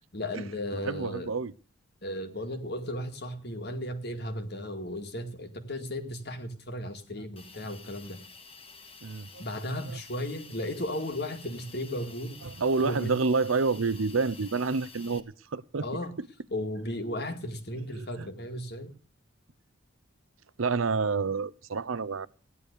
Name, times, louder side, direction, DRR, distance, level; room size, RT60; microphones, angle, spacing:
voice 1, 0.1-1.3 2.0-8.2 9.4-12.4 12.8-13.2 15.8-16.1 16.5-18.9, left 1 dB, 55° left, 2.2 m, -35 dB
voice 2, 0.7-1.5 9.0-9.4 9.9-10.0 12.4-15.2 15.5-15.9 16.2-16.3 17.9-18.3 20.6-22.3, right 4 dB, 90° right, 0.7 m, -28 dB
Hiss, 7.4-15.2, left 4 dB, 30° left, 1.6 m, -50 dB
16.0 x 11.0 x 6.7 m
head